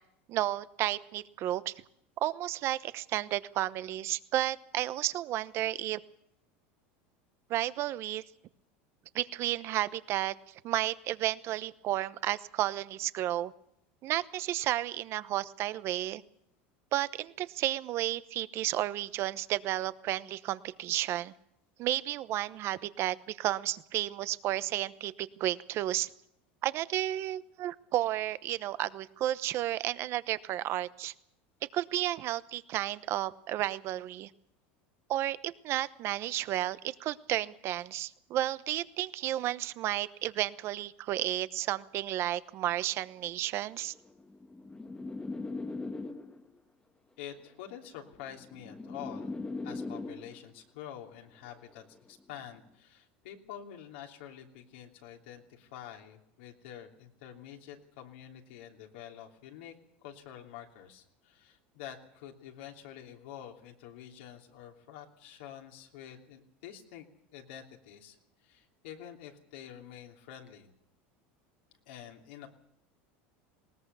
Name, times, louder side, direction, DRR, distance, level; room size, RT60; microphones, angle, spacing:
voice 1, 0.3-1.7 2.2-6.0 7.5-8.2 9.1-13.5 14.0-16.2 16.9-21.3 21.8-26.1 26.6-31.1 31.7-34.3 35.1-43.9, right 14 dB, 50° right, 15 dB, 0.9 m, -32 dB
sound 1, 43.7-46.6 47.6-50.6 51.6-52.0, left 3 dB, 15° left, 1.3 m, -40 dB
voice 2, 47.2-49.3 49.6-59.7 60.0-67.1 67.3-68.2 68.4-70.7 71.9-72.5, left 10 dB, 80° left, 1 dB, 3.1 m, -47 dB
20.5 x 18.5 x 7.0 m, 0.77 s
supercardioid pair, 120°, 6 cm